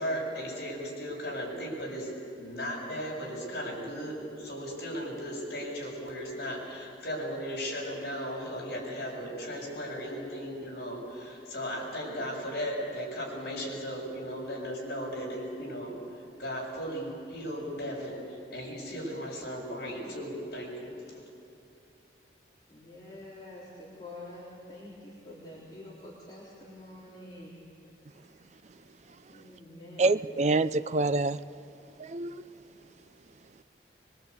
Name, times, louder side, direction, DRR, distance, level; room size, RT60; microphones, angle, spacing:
voice 1, 0.0-2.1 2.4-16.0 16.4-21.2, equal, 60° left, -2 dB, 7.2 m, -36 dB
voice 2, 22.7-27.5 29.3-30.2, left 1 dB, 25° left, -7 dB, 3.7 m, -47 dB
voice 3, 30.0-31.4 32.0-32.4, right 3 dB, 40° right, 13 dB, 0.5 m, -26 dB
23.5 x 23.0 x 8.4 m, 2.5 s
head